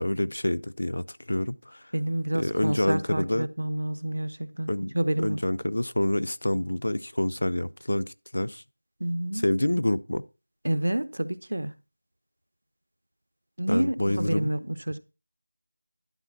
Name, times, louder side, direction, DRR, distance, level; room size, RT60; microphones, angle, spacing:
voice 1, 0.0-1.8 2.3-3.5 4.7-4.9 5.2-8.6 9.4-10.2 13.7-14.5, left 1 dB, 80° left, 0.6 m, -27 dB
voice 2, 1.9-5.4 9.0-9.4 10.6-11.7 13.6-15.0, right 1 dB, 85° right, 0.9 m, -29 dB
11.5 x 4.4 x 5.9 m
figure-of-eight pair, 175°, 0 cm